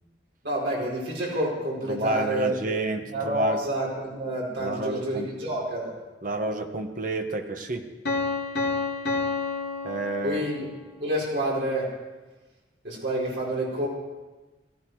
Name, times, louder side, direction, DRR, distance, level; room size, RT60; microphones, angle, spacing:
voice 1, 0.4-2.5 3.1-5.9 10.2-10.7 11.0-11.9 12.8-13.9, right 1 dB, 70° right, -5 dB, 4.8 m, -28 dB
voice 2, 1.9-3.6 4.6-5.3 6.2-7.8 9.8-10.4, right 2 dB, 45° right, 5 dB, 1.2 m, -29 dB
Piano, 8.0-10.8, left 3 dB, 65° left, 2.5 m, -29 dB
17.5 x 14.0 x 4.7 m, 1.2 s
head